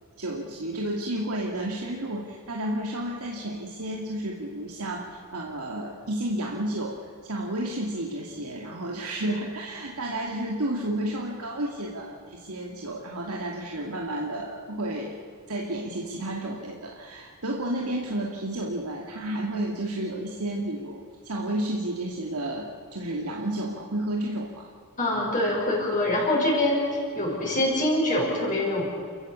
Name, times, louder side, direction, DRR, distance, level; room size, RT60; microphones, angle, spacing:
voice 1, 0.2-15.2 15.5-24.7, right 1 dB, 85° right, 0 dB, 2.3 m, -31 dB
voice 2, 25.0-28.9, left 1 dB, 35° left, -4 dB, 6.3 m, -24 dB
29.0 x 15.0 x 8.4 m, 2.2 s
head